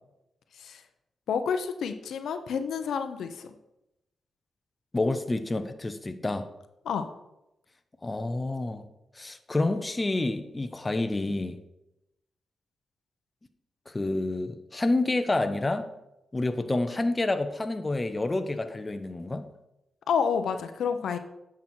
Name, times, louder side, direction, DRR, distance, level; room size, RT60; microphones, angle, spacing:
voice 1, 1.3-3.5 6.8-7.1 20.1-21.2, left 6 dB, 85° left, 8 dB, 0.7 m, -29 dB
voice 2, 4.9-6.5 8.0-8.9 9.1-11.6 13.9-15.9 16.3-19.5, left 2 dB, 25° left, 8 dB, 0.8 m, -28 dB
9.1 x 6.2 x 4.4 m, 0.89 s
cardioid pair, 85°, 0 cm